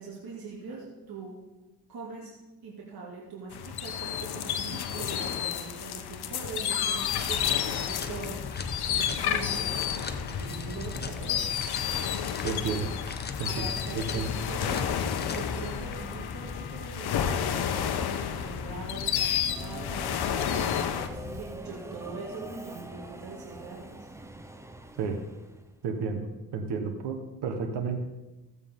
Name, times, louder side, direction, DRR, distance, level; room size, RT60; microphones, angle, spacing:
voice 1, 0.0-1.4 1.9-2.3 2.6-8.4 8.8-11.5 13.4-14.9 15.3-23.8, right 4 dB, 60° right, -4 dB, 2.5 m, -42 dB
sound 1, 3.5-21.1, left 9 dB, 65° left, 0.9 m, -31 dB
sound 2, 7.1-21.4, left 4 dB, 25° left, 0.8 m, -39 dB
voice 2, 12.4-12.9 13.4-13.7 13.9-14.3 25.0-25.2 25.8-26.3 26.5-28.0, right 5 dB, 80° right, 5 dB, 1.4 m, -31 dB
Subway metro underground, 19.5-25.7, right 1 dB, 5° right, 0.8 m, -44 dB
15.0 x 8.2 x 3.7 m, 1.0 s
cardioid pair, 80°, 41 cm